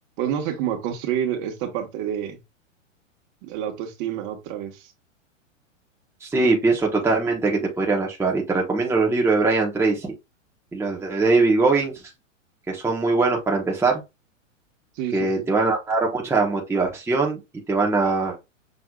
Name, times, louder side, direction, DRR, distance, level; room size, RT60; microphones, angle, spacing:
voice 1, 0.2-2.4 3.4-4.9 14.9-15.5, right 10 dB, 40° right, 1.6 m, -28 dB
voice 2, 6.2-10.1 10.7-11.9 12.7-14.0 15.1-17.4 17.7-18.4, right 3 dB, 5° right, 1.2 m, -21 dB
6.4 x 3.4 x 2.4 m
hypercardioid pair, 110°, 39 cm